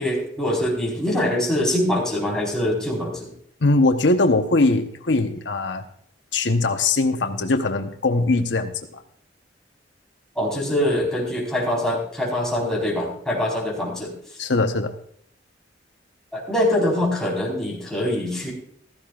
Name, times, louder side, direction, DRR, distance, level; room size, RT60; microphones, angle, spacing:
voice 1, 0.0-3.3 10.3-14.1 16.3-18.5, left 1 dB, 5° left, -4 dB, 4.5 m, -24 dB
voice 2, 3.6-5.8 6.3-9.0 14.4-14.9, left 2 dB, 80° left, 6 dB, 1.0 m, -21 dB
15.0 x 14.5 x 2.5 m, 0.66 s
head